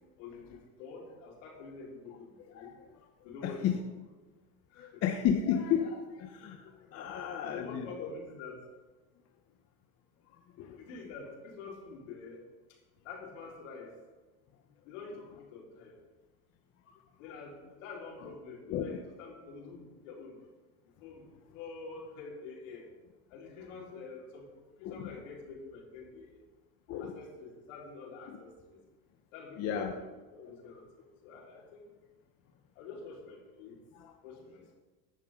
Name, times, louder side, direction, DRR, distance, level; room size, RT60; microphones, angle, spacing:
voice 1, 0.2-2.7 3.2-3.7 4.7-5.0 7.4-8.6 10.8-12.4 13.0-13.9 14.8-15.9 17.2-20.4 21.0-21.2 21.5-22.9 23.3-24.5 24.8-26.4 27.0-28.8 29.3-30.9 31.2-31.9 32.8-33.8 34.2-34.7, left 4 dB, 80° left, -3 dB, 4.6 m, -46 dB
voice 2, 3.4-3.8 4.8-8.1 10.6-10.8 18.7-19.0 24.8-25.1 26.9-27.2 29.6-29.9 34.0-34.1, left 8 dB, 40° left, 4 dB, 1.1 m, -33 dB
17.0 x 11.0 x 3.9 m, 1.3 s
supercardioid pair, 140°, 36 cm